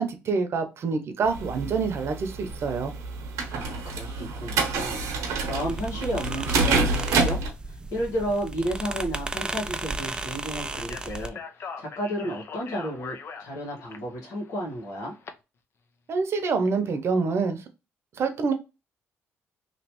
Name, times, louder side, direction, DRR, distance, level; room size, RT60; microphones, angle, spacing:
voice 1, 0.0-2.9 16.1-17.6 18.2-18.5, right 4 dB, 60° right, 0.7 m, -26 dB
sound 1, 1.2-7.5, right 3 dB, 90° right, 0.8 m, -28 dB
voice 2, 3.5-5.0 5.4-15.2, equal, 85° left, 1.6 m, -32 dB
sound 2, 4.8-11.3, right 2 dB, 15° right, 0.3 m, -35 dB
Speech, 10.7-15.3, left 5 dB, 50° left, 0.6 m, -41 dB
3.1 x 2.9 x 3.0 m
cardioid pair, 90°, 5 cm